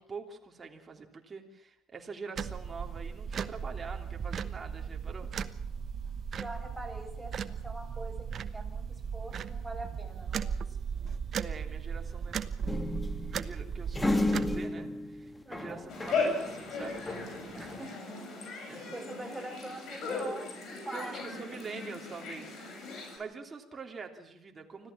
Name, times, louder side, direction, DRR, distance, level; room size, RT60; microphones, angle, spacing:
voice 1, 0.0-5.3 11.3-17.0 18.7-18.9 20.9-24.9, right 4 dB, 30° right, 2 dB, 3.2 m, -45 dB
sound 1, 2.4-14.6, right 6 dB, 45° right, 1.1 m, -37 dB
voice 2, 6.3-10.8 15.4-15.9 17.5-21.1, right 1 dB, 5° right, 1 dB, 7.5 m, -44 dB
sound 2, 12.7-16.4 16.7-17.8, left 2 dB, 15° left, 2.4 m, -33 dB
sound 3, 15.9-23.2, left 3 dB, 55° left, 7.2 m, -37 dB
25.5 x 16.0 x 7.4 m, 0.79 s
hypercardioid pair, 60°, 0 cm